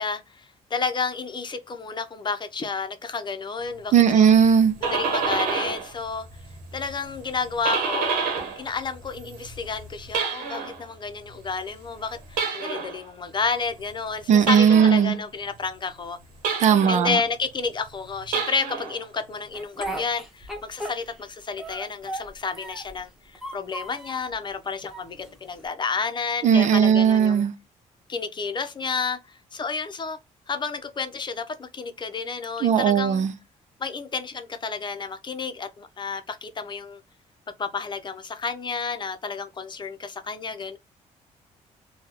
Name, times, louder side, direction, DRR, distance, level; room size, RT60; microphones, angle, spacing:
voice 1, 0.0-4.3 4.8-6.3 6.7-8.2 8.6-16.2 16.9-27.4 28.1-30.2 30.5-33.2 33.8-37.0 37.6-40.8, left 5 dB, 35° left, 0.7 m, -31 dB
voice 2, 3.9-4.7 14.3-15.2 16.6-17.2 26.4-27.5 32.6-33.3, right 7 dB, 60° right, 0.5 m, -17 dB
sound 1, 4.5-5.9 6.3-8.7 9.0-10.8 12.3-13.0 14.4-15.1 16.4-17.1 18.2-19.0, right 5 dB, 85° right, 1.0 m, -28 dB
Speech, 19.5-21.3 21.6-23.0 23.3-24.3 24.9-25.7, right 1 dB, ahead, 1.1 m, -36 dB
3.5 x 2.3 x 2.9 m
cardioid pair, 80°, 14 cm